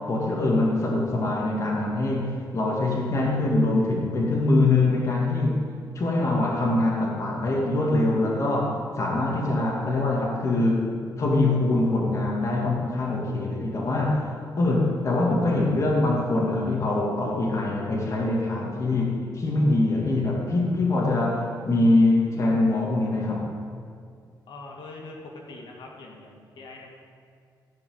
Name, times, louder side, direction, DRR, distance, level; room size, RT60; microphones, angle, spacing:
voice 1, 0.0-5.6 5.9-10.9 11.2-14.3 14.6-23.5, left 2 dB, 40° left, -3 dB, 2.3 m, -23 dB
voice 2, 24.5-25.2 25.5-26.9, left 3 dB, 85° left, 0 dB, 2.2 m, -43 dB
15.0 x 6.0 x 8.8 m, 2.2 s
cardioid pair, 115°, 8 cm